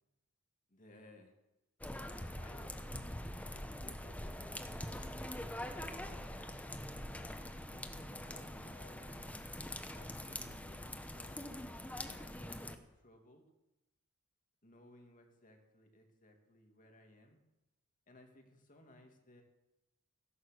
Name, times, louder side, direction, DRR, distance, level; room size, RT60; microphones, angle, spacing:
voice 1, 0.7-1.3 2.3-3.1 3.5-4.7 5.7-6.3 7.7-9.3 9.9-13.5 14.6-17.4 18.1-19.4, left 1 dB, 40° left, 3 dB, 2.6 m, -60 dB
sound 1, 1.8-12.8, left 1 dB, 5° left, 1.1 m, -44 dB
15.5 x 11.5 x 6.7 m, 0.98 s
head